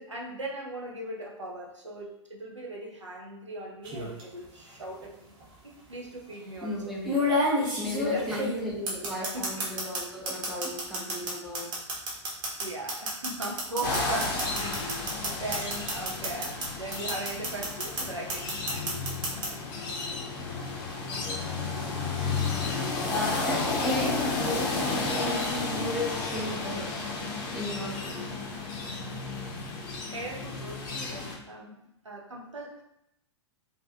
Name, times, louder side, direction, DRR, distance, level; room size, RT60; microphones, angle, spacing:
voice 1, 0.0-5.3 5.6-6.8 8.0-8.4 9.3-9.6 12.6-19.2 29.9-31.8 32.0-32.8, right 2 dB, 85° right, -1 dB, 0.6 m, -39 dB
sound 1, 3.8-4.2 5.4-5.5 7.0-10.0 10.3-16.7 16.9-18.0 18.3-19.5, equal, 30° right, 0.9 m, -29 dB
voice 2, 6.6-7.1 7.8-11.7 21.0-21.5 23.1-27.0 27.5-28.4, left 1 dB, ahead, -5 dB, 0.6 m, -35 dB
sound 2, 13.8-31.4, left 3 dB, 45° left, 0.6 m, -32 dB
2.5 x 2.3 x 2.5 m, 0.81 s
figure-of-eight pair, 100°, 15 cm